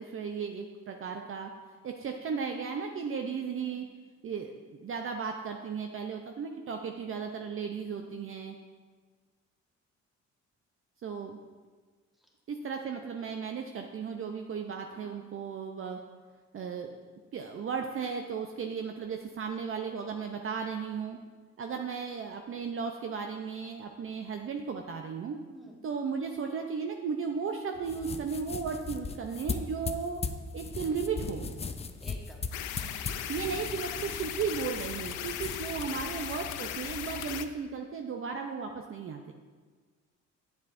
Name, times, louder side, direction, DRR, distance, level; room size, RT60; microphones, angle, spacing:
voice 1, 0.0-1.5 1.8-3.8 4.2-8.5 11.0-11.4 12.5-16.0 16.5-16.9 17.3-21.2 21.6-25.4 25.8-30.2 30.5-31.5 33.3-39.3, right 6 dB, 45° right, 3 dB, 0.5 m, -35 dB
voice 2, 7.9-8.3 12.2-12.3 25.5-25.8 32.0-32.5 32.7-33.2, right 1 dB, ahead, -1 dB, 1.4 m, -54 dB
sound 1, 27.8-37.4, left 4 dB, 20° left, 0.4 m, -39 dB
sound 2, 32.5-37.5, left 10 dB, 85° left, 0.5 m, -37 dB
8.3 x 7.1 x 2.5 m, 1.4 s
cardioid pair, 90°, 30 cm